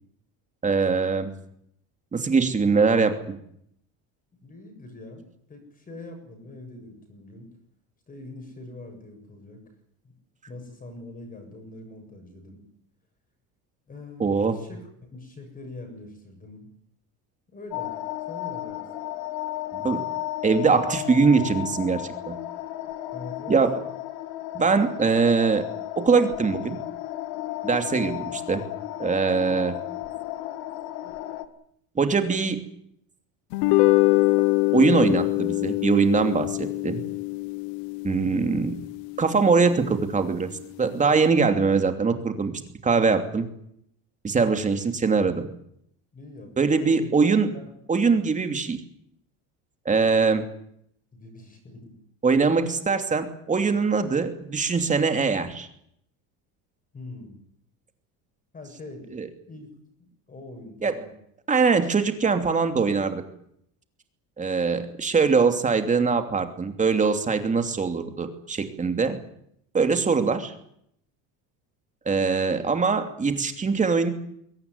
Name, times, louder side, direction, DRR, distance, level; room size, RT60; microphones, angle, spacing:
voice 1, 0.6-1.3 2.1-3.4 14.2-14.6 19.7-20.0 20.4-22.4 23.5-23.8 24.5-25.6 26.0-26.8 27.6-28.6 29.0-29.8 31.9-32.6 34.7-37.0 38.0-38.7 39.2-40.5 40.8-42.5 42.8-43.5 44.2-45.4 46.6-47.5 47.9-48.8 49.8-50.5 52.2-55.7 59.1-59.3 60.8-61.0 61.5-63.2 64.4-69.2 69.7-70.5 72.0-74.1, right 4 dB, 20° right, 7 dB, 2.8 m, -22 dB
voice 2, 4.4-7.5 8.1-9.6 10.0-10.1 10.5-12.6 13.9-16.7 17.5-18.8 23.1-23.6 38.2-38.6 46.1-47.1 47.5-47.7 51.1-51.9 56.9-57.4 58.5-59.1 59.5-59.7 60.0-61.1 68.9-69.1, left 2 dB, 20° left, 5 dB, 7.4 m, -43 dB
sound 1, 17.7-31.4, left 14 dB, 75° left, 2.5 m, -34 dB
sound 2, 33.5-40.0, left 22 dB, 90° left, 0.9 m, -24 dB
22.5 x 18.0 x 9.7 m, 0.71 s
cardioid pair, 145°, 37 cm